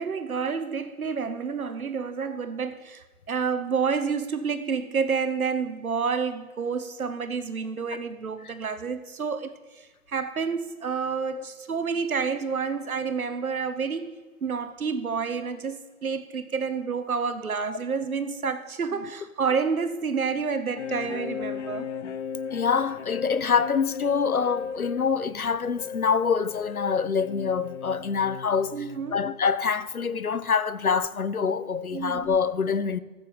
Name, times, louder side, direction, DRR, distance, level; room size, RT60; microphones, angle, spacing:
voice 1, 0.0-14.1 14.4-21.9 28.7-29.2 31.9-32.3, right 5 dB, 85° right, 0.9 m, -29 dB
sound 1, 20.8-29.3, left 7 dB, 55° left, 0.9 m, -37 dB
voice 2, 22.5-28.8 29.1-33.0, left 6 dB, 90° left, 0.7 m, -25 dB
14.0 x 7.6 x 5.2 m
figure-of-eight pair, 120°, 42 cm